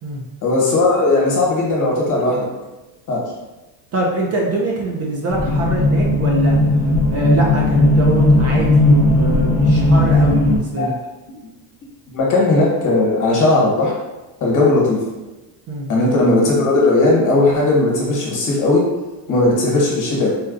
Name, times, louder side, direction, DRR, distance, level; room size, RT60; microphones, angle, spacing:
voice 1, 0.4-2.5 3.1-3.2 10.8-10.9 12.1-13.9 14.4-15.0 15.9-18.8 19.3-20.3, left 2 dB, 40° left, -3 dB, 1.2 m, -16 dB
voice 2, 3.9-6.6 7.1-10.9 15.7-15.9, right 2 dB, 35° right, -2 dB, 0.5 m, -23 dB
sound 1, 5.3-10.6, left 1 dB, 25° left, 0.7 m, -15 dB
4.2 x 2.3 x 2.5 m, 1.1 s
cardioid pair, 125°, 45 cm